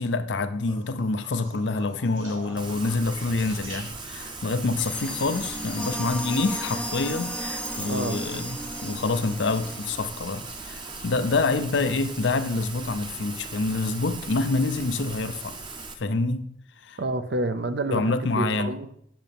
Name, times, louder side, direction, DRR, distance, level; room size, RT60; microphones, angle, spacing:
voice 1, 0.0-15.6 16.0-16.5 16.8-17.0 17.9-18.7, left 3 dB, 65° left, 0.6 m, -27 dB
sound 1, 0.6-4.3 6.5-7.0 8.6-8.7, right 2 dB, 85° right, 2.6 m, -46 dB
Rain, 2.6-15.9, right 4 dB, 25° right, 0.8 m, -39 dB
sound 2, 4.8-11.0, equal, 5° left, 0.5 m, -35 dB
voice 2, 7.9-8.2 17.0-18.9, right 2 dB, 60° right, 0.7 m, -29 dB
10.5 x 6.7 x 3.5 m
head